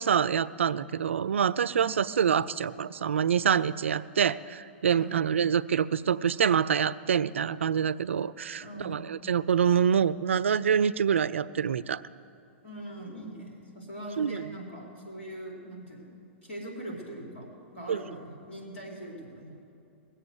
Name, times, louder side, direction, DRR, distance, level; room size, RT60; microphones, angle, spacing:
voice 1, 0.0-12.0 14.2-14.5 17.9-18.0, right 7 dB, 85° right, 17 dB, 0.4 m, -26 dB
voice 2, 8.6-9.1 12.6-16.2 16.4-17.5 17.7-19.5, right 1 dB, 80° left, -2 dB, 4.2 m, -41 dB
20.5 x 7.7 x 8.1 m, 2.7 s
hypercardioid pair, 115°, 7 cm